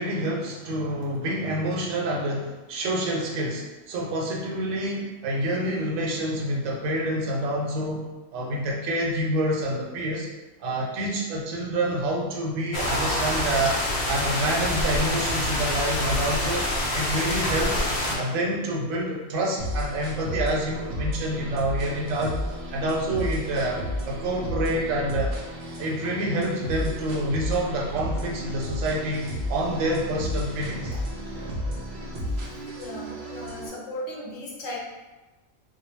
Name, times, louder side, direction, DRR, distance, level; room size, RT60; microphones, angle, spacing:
voice 1, 0.0-10.3 10.6-13.8 14.1-17.9 18.2-22.4 22.7-25.3 25.8-31.0, right 1 dB, 80° right, -3 dB, 0.9 m, -27 dB
sound 1, 12.7-18.2, left 1 dB, 60° left, 0.6 m, -26 dB
sound 2, 19.6-33.7, equal, 60° right, 0.5 m, -32 dB
voice 2, 32.3-34.8, left 1 dB, 75° left, -3 dB, 1.0 m, -37 dB
2.2 x 2.2 x 3.0 m, 1.1 s
omnidirectional pair, 1.3 m